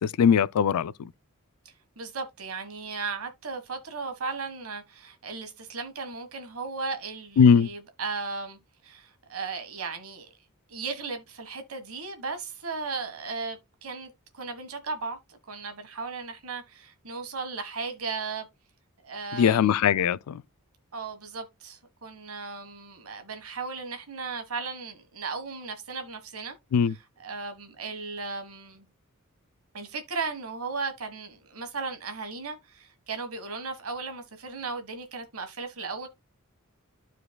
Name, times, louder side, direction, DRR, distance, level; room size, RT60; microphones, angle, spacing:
voice 1, 0.0-0.9 7.4-7.7 19.3-20.4 26.7-26.9, left 7 dB, 80° left, 0.4 m, -20 dB
voice 2, 1.6-10.3 10.7-18.5 19.0-19.8 20.9-26.6 26.8-28.8 29.7-36.1, right 4 dB, 75° right, 1.5 m, -36 dB
13.0 x 4.5 x 2.3 m
head